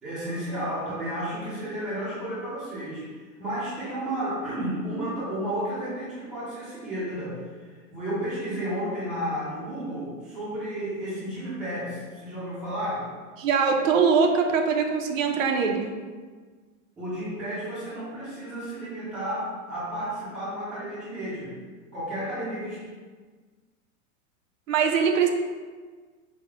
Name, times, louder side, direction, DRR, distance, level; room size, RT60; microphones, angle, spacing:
voice 1, 0.0-7.4 7.7-13.1 17.0-21.6 21.9-22.8, right 1 dB, ahead, -12 dB, 0.5 m, -32 dB
voice 2, 13.4-15.9 24.7-25.3, right 5 dB, 60° right, 4 dB, 0.6 m, -22 dB
4.9 x 2.1 x 4.6 m, 1.4 s
supercardioid pair, 175°, 44 cm